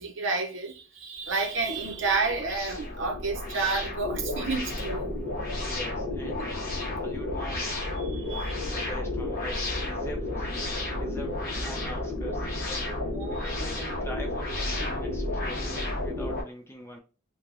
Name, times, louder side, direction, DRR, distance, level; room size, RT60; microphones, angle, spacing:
voice 1, 0.0-5.1 6.2-6.3 8.0-8.7 12.2-12.3 13.1-13.4, right 4 dB, 60° right, 0.6 m, -30 dB
sound 1, 1.3-16.4, left 2 dB, 45° left, 1.0 m, -32 dB
voice 2, 5.4-7.8 8.1-8.3 8.7-12.9 13.2-17.0, equal, 10° left, 0.3 m, -43 dB
3.1 x 2.2 x 2.5 m
head